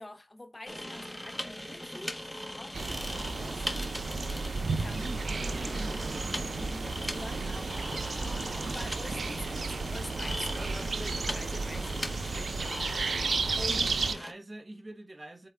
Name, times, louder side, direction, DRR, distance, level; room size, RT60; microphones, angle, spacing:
voice 1, 0.0-4.0 4.8-5.3 6.6-7.7 8.2-12.8 13.5-13.9, left 2 dB, 25° left, 1.2 m, -46 dB
sound 1, 0.7-14.3, left 1 dB, 10° left, 1.4 m, -39 dB
sound 2, 2.7-14.1, right 4 dB, 75° right, 0.8 m, -33 dB
voice 2, 4.9-6.7 13.6-13.8 14.1-15.5, right 1 dB, 30° right, 1.3 m, -45 dB
7.9 x 4.1 x 3.5 m
wide cardioid pair, 120°, 0 cm